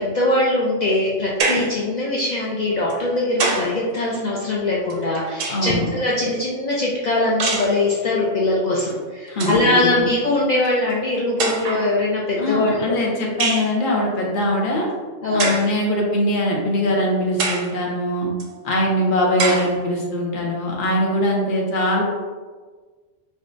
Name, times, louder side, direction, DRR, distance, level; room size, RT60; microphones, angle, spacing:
voice 1, 0.0-13.0 15.2-15.5, left 2 dB, 85° left, -5 dB, 0.3 m, -21 dB
sound 1, 1.4-1.8 2.9-3.8 4.9-5.8 7.4-7.8 8.9-9.0 9.3-9.7 10.6-10.7 11.4-11.9 13.4-13.7 15.4-15.7 16.4-16.5 17.4-17.7 18.4-18.5 19.4-19.7, right 3 dB, 90° right, 1.0 m, -24 dB
voice 2, 5.5-5.9 9.3-10.1 12.4-14.9 15.3-18.3 18.6-22.0, left 1 dB, 50° left, -2 dB, 0.8 m, -22 dB
4.9 x 2.1 x 2.5 m, 1.4 s
omnidirectional pair, 1.3 m